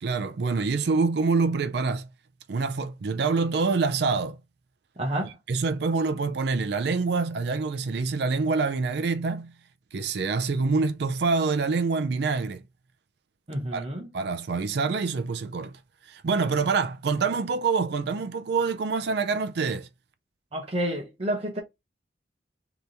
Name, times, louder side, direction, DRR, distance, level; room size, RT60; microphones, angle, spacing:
voice 1, 0.0-2.1 2.5-4.4 5.5-9.5 9.9-12.6 13.7-13.9 14.1-15.8 16.1-19.9, right 4 dB, 65° right, 0.4 m, -26 dB
voice 2, 5.0-5.4 13.5-14.1 20.5-21.6, right 1 dB, 35° right, 0.9 m, -29 dB
3.3 x 2.9 x 3.9 m
head